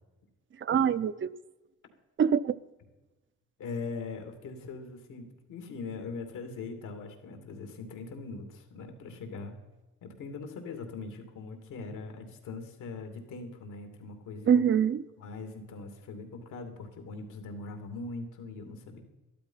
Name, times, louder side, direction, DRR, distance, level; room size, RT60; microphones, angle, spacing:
voice 1, 0.6-1.3 2.2-2.5 14.5-15.0, right 8 dB, 40° right, 0.7 m, -24 dB
voice 2, 3.6-9.5 10.0-14.6 15.2-19.0, left 4 dB, 80° left, 2.8 m, -41 dB
13.0 x 12.5 x 5.7 m
cardioid pair, 90°, 30 cm